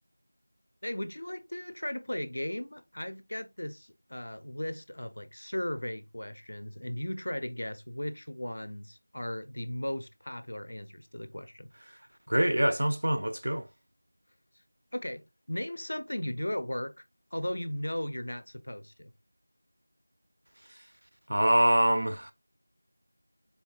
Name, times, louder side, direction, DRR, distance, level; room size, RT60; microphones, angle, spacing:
voice 1, 0.8-11.7 14.9-16.9 17.3-19.1, left 1 dB, 50° left, 0.4 m, -36 dB
voice 2, 12.3-13.7 21.3-22.3, right 1 dB, 55° right, 0.4 m, -25 dB
3.6 x 2.1 x 2.4 m
figure-of-eight pair, 180°, 0 cm